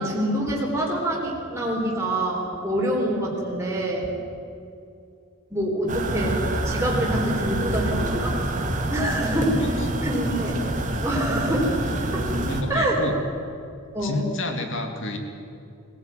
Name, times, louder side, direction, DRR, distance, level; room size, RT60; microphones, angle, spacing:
voice 1, 0.0-4.1 5.5-8.4 8.9-9.7 10.0-10.5 11.0-11.8 12.1-12.2 12.7-13.0 13.9-14.3, right 1 dB, 10° right, -4 dB, 3.9 m, -26 dB
sound 1, 5.9-12.6, right 1 dB, 35° right, 2.3 m, -27 dB
voice 2, 9.6-10.1 12.4-13.2 14.0-15.2, left 2 dB, 55° left, 4 dB, 2.6 m, -30 dB
23.0 x 16.0 x 9.2 m, 2.6 s
head